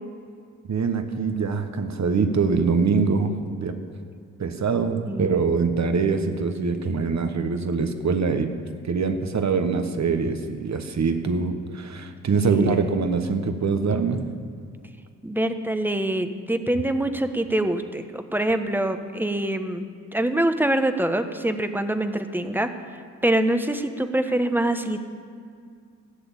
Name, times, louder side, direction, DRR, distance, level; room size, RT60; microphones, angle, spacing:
voice 1, 0.7-3.8 4.4-8.5 8.8-14.2, right 5 dB, 50° right, 8 dB, 1.4 m, -24 dB
voice 2, 5.0-5.5 12.3-12.9 15.2-19.9 20.1-22.7 23.2-25.0, right 1 dB, 5° right, 8 dB, 1.1 m, -25 dB
14.5 x 7.0 x 8.7 m, 2.2 s
supercardioid pair, 50°, 35 cm